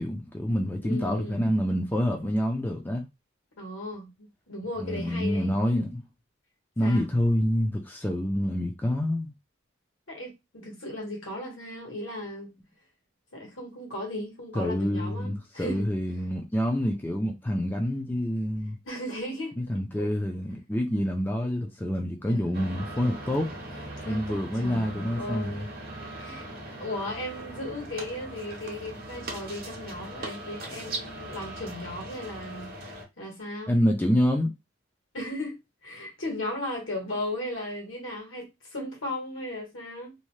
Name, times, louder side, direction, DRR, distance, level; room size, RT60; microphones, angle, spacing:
voice 1, 0.0-3.0 4.8-6.0 6.8-9.3 14.5-18.8 19.6-23.5 24.0-25.7 33.7-34.5, equal, 10° left, 0.3 m, -27 dB
voice 2, 0.8-1.5 3.6-5.5 6.8-7.0 10.1-12.5 13.3-15.9 18.8-19.5 20.0-20.1 22.3-22.8 24.0-25.8 26.1-26.5 26.8-33.7 35.1-40.1, left 1 dB, 80° left, 1.4 m, -36 dB
sound 1, 22.5-33.0, right 2 dB, 50° right, 0.7 m, -40 dB
2.7 x 2.1 x 3.1 m
head